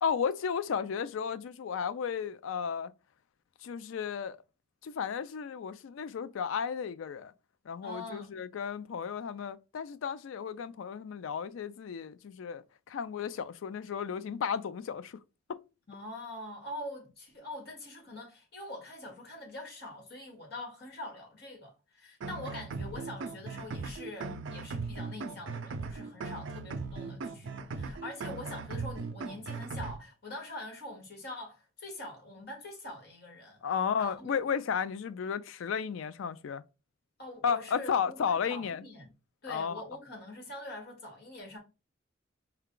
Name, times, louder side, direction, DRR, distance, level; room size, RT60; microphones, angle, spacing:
voice 1, 0.0-2.9 3.6-4.4 4.8-7.3 7.7-15.2 15.5-15.6 33.6-36.6 37.4-38.9 39.5-39.8, left 7 dB, 90° left, 0.4 m, -33 dB
voice 2, 7.8-8.4 15.9-33.6 34.0-34.3 37.2-39.1 39.4-41.6, left 1 dB, 55° left, 1.6 m, -44 dB
sound 1, 22.2-29.9, right 4 dB, 75° right, 0.5 m, -38 dB
4.5 x 2.2 x 3.7 m
head